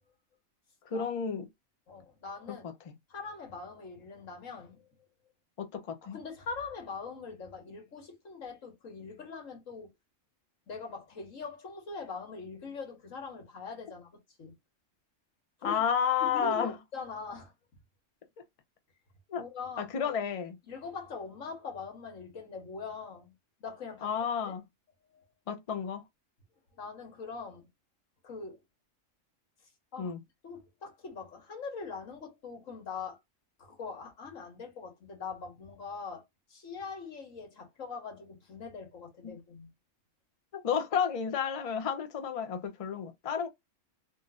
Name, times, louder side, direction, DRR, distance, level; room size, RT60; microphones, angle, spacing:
voice 1, 0.9-1.5 2.9-3.0 5.6-6.2 15.6-16.7 19.3-19.4 19.8-20.6 24.0-24.6 25.5-26.0 30.0-30.2 39.2-39.3 40.5-43.5, left 7 dB, 40° left, 0.5 m, -31 dB
voice 2, 1.9-2.7 3.1-4.9 6.0-9.9 10.7-14.1 14.4-14.5 15.6-15.8 16.2-17.5 19.3-20.1 20.7-23.3 23.6-24.1 24.4-24.6 25.1-25.3 26.8-27.7 28.2-28.6 29.9-30.1 30.4-33.2 33.6-36.2 36.5-39.7, left 4 dB, 80° left, 1.7 m, -42 dB
3.8 x 2.6 x 2.4 m
omnidirectional pair, 1.3 m